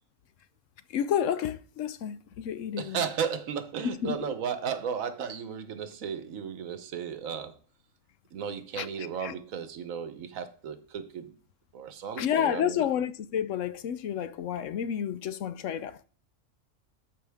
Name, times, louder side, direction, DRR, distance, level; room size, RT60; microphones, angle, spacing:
voice 1, 0.9-3.0 3.8-4.2 8.8-9.4 12.2-16.0, left 9 dB, 70° left, 0.9 m, -30 dB
voice 2, 2.8-7.6 8.3-11.4 11.7-12.9, right 7 dB, 80° right, 1.3 m, -34 dB
12.5 x 5.2 x 3.5 m
omnidirectional pair, 1.4 m